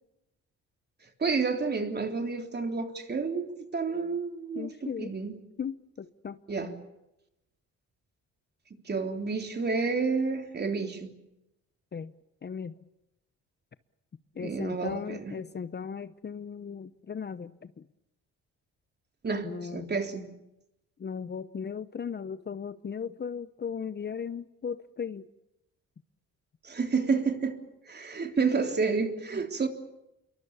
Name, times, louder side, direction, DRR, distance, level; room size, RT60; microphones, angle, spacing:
voice 1, 1.2-5.4 6.5-6.7 8.8-11.1 14.4-15.4 19.2-20.3 26.6-27.6 27.9-29.7, right 4 dB, 35° right, 3.5 m, -30 dB
voice 2, 4.5-5.1 5.6-6.4 11.9-12.1 12.4-12.7 14.4-17.8 19.4-19.9 21.0-25.3, left 6 dB, 35° left, 0.9 m, -37 dB
27.5 x 23.0 x 7.3 m
cardioid pair, 90°, 30 cm